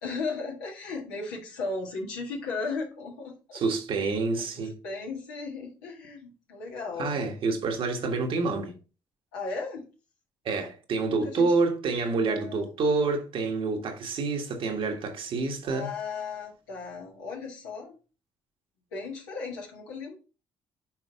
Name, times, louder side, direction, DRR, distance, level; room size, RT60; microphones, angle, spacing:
voice 1, 0.0-3.6 4.4-7.2 9.3-9.9 11.1-11.6 12.3-12.7 15.6-18.0 18.9-20.2, left 4 dB, 75° left, 1.7 m, -36 dB
voice 2, 3.5-4.8 7.0-8.8 10.4-15.9, right 4 dB, 55° right, 1.5 m, -28 dB
6.2 x 4.5 x 3.6 m
figure-of-eight pair, 45°, 11 cm